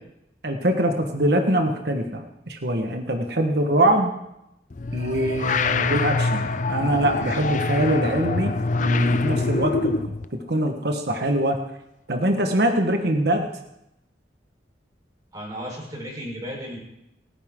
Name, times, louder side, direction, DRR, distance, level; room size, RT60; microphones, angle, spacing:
voice 1, 0.4-4.1 4.9-10.0 10.3-11.6 12.1-13.5, right 1 dB, 65° right, 4 dB, 1.4 m, -23 dB
sound 1, 4.7-10.2, left 3 dB, 45° left, 0.6 m, -25 dB
voice 2, 15.3-16.8, equal, 20° right, -3 dB, 4.4 m, -34 dB
29.0 x 10.0 x 3.7 m, 0.85 s
head